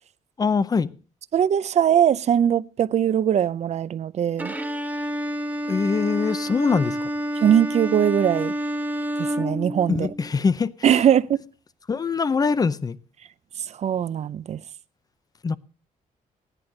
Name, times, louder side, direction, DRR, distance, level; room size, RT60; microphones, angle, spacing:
voice 1, 0.4-0.9 5.7-7.0 9.9-10.7 11.9-13.0 15.4-15.6, left 5 dB, 25° left, 0.6 m, -23 dB
voice 2, 1.3-4.5 7.4-8.5 9.2-10.1 10.8-11.4 13.7-14.6, right 9 dB, 50° right, 0.5 m, -21 dB
Bowed string instrument, 4.4-10.3, equal, 10° right, 1.3 m, -29 dB
16.0 x 10.5 x 3.8 m
cardioid pair, 110°, 14 cm